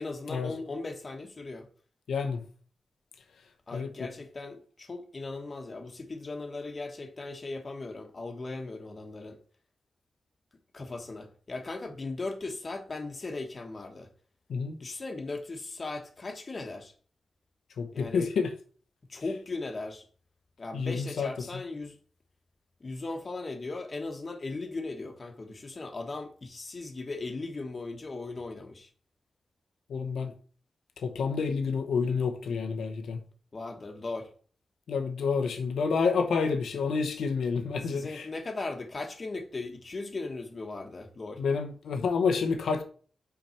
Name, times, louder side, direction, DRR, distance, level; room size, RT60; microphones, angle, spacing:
voice 1, 0.0-1.7 3.7-9.4 10.7-14.1 14.8-16.9 17.9-18.3 19.1-20.1 20.6-22.0 22.8-28.9 33.5-34.3 37.8-41.4, left 3 dB, 45° left, 1.3 m, -38 dB
voice 2, 2.1-2.4 3.7-3.9 14.5-14.8 17.8-18.5 20.7-21.3 29.9-30.3 31.0-33.2 34.9-38.3 41.4-42.8, left 5 dB, 90° left, 1.0 m, -29 dB
5.7 x 5.1 x 4.4 m
cardioid pair, 70°, 0 cm